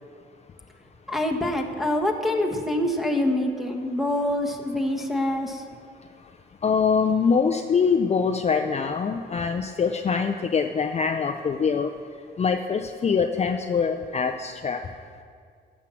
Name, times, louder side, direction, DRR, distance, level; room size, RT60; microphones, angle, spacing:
voice 1, 1.1-5.6, left 1 dB, ahead, 3 dB, 1.3 m, -25 dB
voice 2, 6.6-11.9 12.4-14.8, left 5 dB, 35° left, 6 dB, 0.5 m, -24 dB
9.7 x 7.2 x 7.6 m, 2.1 s
cardioid pair, 90°, 20 cm